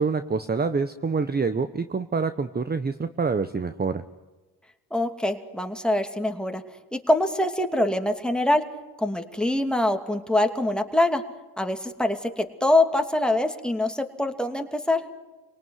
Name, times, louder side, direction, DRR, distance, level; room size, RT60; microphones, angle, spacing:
voice 1, 0.0-4.0, right 4 dB, 25° right, 11 dB, 1.0 m, -26 dB
voice 2, 4.9-6.6 6.9-8.6 9.0-11.2 11.6-15.0, left 1 dB, ahead, 5 dB, 2.7 m, -24 dB
27.5 x 18.5 x 9.6 m, 1.2 s
supercardioid pair, 70°, 41 cm